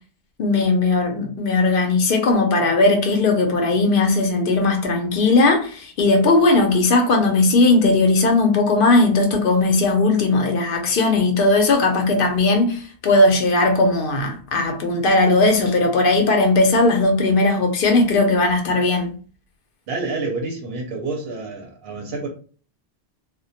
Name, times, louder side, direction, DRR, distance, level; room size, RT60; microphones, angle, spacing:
voice 1, 0.4-19.1, left 2 dB, 60° left, 0.7 m, -18 dB
voice 2, 19.9-22.3, right 3 dB, 65° right, 0.8 m, -28 dB
2.2 x 2.1 x 2.7 m
omnidirectional pair, 1.2 m